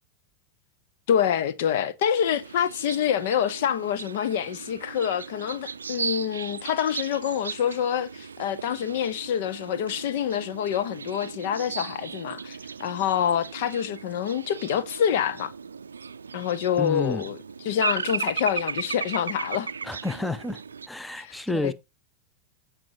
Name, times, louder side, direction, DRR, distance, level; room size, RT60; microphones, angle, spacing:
voice 1, 1.1-15.5 16.3-19.7 21.2-21.7, left 9 dB, 55° left, 0.7 m, -26 dB
sound 1, 2.2-20.9, right 5 dB, 75° right, 0.4 m, -37 dB
voice 2, 16.8-17.2 19.8-20.6 20.9-21.7, left 2 dB, 5° left, 0.7 m, -30 dB
14.5 x 5.0 x 2.8 m
figure-of-eight pair, 90°, 0 cm